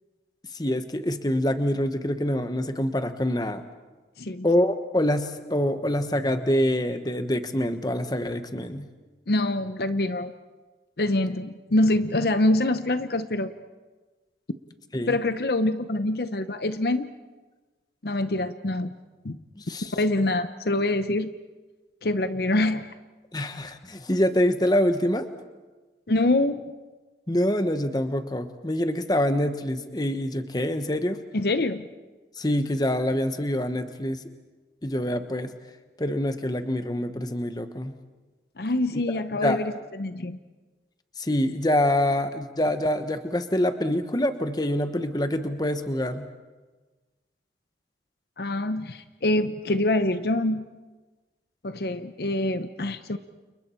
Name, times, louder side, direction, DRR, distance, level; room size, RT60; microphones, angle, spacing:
voice 1, 0.5-3.6 4.4-8.9 14.9-15.2 19.6-19.9 23.3-25.3 27.3-31.2 32.4-34.2 34.8-35.5 36.0-37.9 39.4-39.6 41.2-46.3, left 1 dB, 20° left, 9 dB, 1.1 m, -25 dB
voice 2, 9.3-10.3 11.0-13.5 15.1-17.1 18.0-18.9 19.2-19.4 19.9-21.3 22.0-22.9 26.1-26.7 31.3-31.9 38.6-39.7 40.0-40.4 48.4-50.6 51.6-53.2, left 2 dB, 60° left, 11 dB, 0.8 m, -25 dB
29.5 x 29.5 x 4.5 m, 1.3 s
head